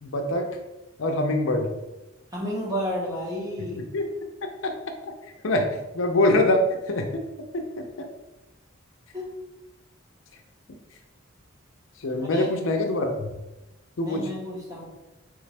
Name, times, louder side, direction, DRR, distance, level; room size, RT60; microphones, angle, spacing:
voice 1, 0.0-0.5 1.0-1.7 3.7-4.1 4.4-4.8 5.4-7.2 7.5-8.1 12.0-13.3 14.0-14.3, left 1 dB, 70° left, 4 dB, 0.6 m, -24 dB
voice 2, 2.3-3.8 9.1-9.3 12.2-12.5 14.0-14.8, equal, 15° right, -4 dB, 1.1 m, -31 dB
3.8 x 3.4 x 3.3 m, 0.97 s
head